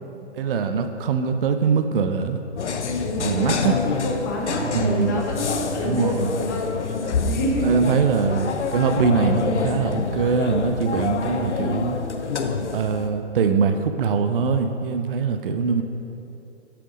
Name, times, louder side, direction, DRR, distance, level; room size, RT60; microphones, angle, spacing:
voice 1, 0.4-2.4 3.2-3.8 4.6-5.3 5.8-6.4 7.6-12.0 12.7-15.8, right 5 dB, 50° right, 7 dB, 0.4 m, -22 dB
sound 1, 2.6-13.1, left 5 dB, 75° left, 0.6 m, -27 dB
voice 2, 3.0-6.2 6.4-6.7 7.2-7.7, left 1 dB, 15° left, 0 dB, 0.4 m, -28 dB
5.9 x 4.9 x 5.0 m, 2.8 s
figure-of-eight pair, 130°, 35 cm